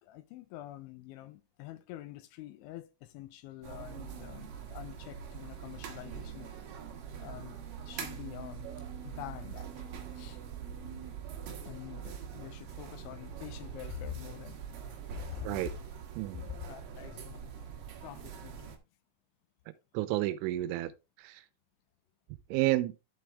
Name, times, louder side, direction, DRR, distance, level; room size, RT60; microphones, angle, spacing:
voice 1, 0.0-6.5 7.2-7.6 7.8-8.7 9.0-10.4 11.7-15.7 16.7-17.5 18.0-18.8, left 14 dB, 80° left, 2.9 m, -46 dB
sound 1, 3.6-18.8, right 7 dB, 65° right, 2.3 m, -43 dB
voice 2, 19.9-20.9 21.2-21.4 22.5-22.9, right 16 dB, 85° right, 3.1 m, -30 dB
12.0 x 4.6 x 3.3 m
omnidirectional pair, 5.6 m